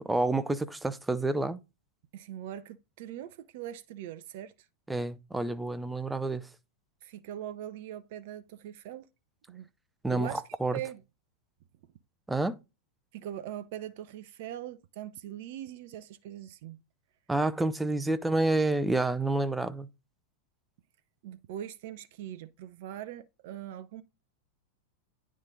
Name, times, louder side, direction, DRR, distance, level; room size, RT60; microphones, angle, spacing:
voice 1, 0.1-1.6 4.9-6.4 10.0-10.8 12.3-12.6 17.3-19.9, right 2 dB, 5° right, 0.5 m, -29 dB
voice 2, 2.1-4.5 7.0-9.1 9.5-9.7 10.1-10.4 10.7-11.0 13.1-16.8 21.2-24.0, right 11 dB, 50° right, 0.5 m, -41 dB
9.6 x 3.7 x 3.8 m
figure-of-eight pair, 90°, 0 cm